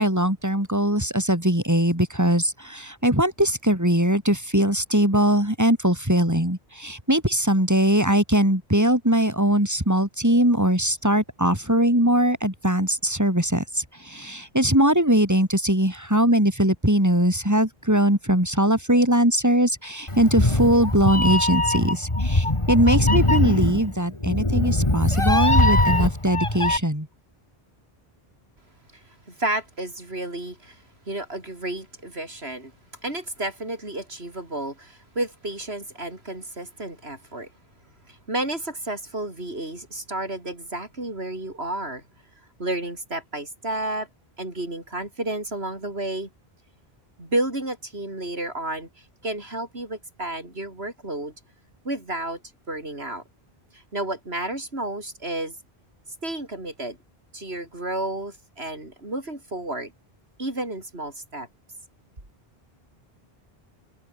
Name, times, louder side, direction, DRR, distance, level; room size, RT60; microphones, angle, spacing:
voice 1, 0.0-13.6 14.1-27.1, right 1 dB, 15° right, 6.3 m, -21 dB
Meow, 20.1-26.8, left 1 dB, 30° left, 2.9 m, -21 dB
voice 2, 28.9-32.7 33.0-37.5 38.1-42.0 42.6-44.1 44.4-46.3 47.2-48.9 49.2-51.3 51.8-52.4 52.7-53.2 53.7-55.5 56.2-57.0 57.3-59.9 60.4-61.5, right 1 dB, 90° right, 6.3 m, -31 dB
omnidirectional pair, 1.0 m